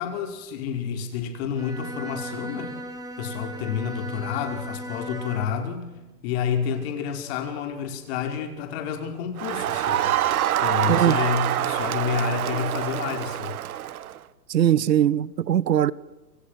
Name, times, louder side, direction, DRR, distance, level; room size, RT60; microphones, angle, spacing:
voice 1, 0.0-2.8 3.2-5.9 6.2-10.1 10.6-13.5, left 7 dB, 40° left, 5.4 m, -29 dB
Bowed string instrument, 1.5-5.7, equal, 5° right, 4.1 m, -37 dB
Crowd, 9.4-14.2, right 12 dB, 60° right, 1.5 m, -25 dB
voice 2, 14.5-15.9, right 10 dB, 80° right, 1.3 m, -20 dB
29.5 x 27.5 x 6.7 m
hypercardioid pair, 145°, 49 cm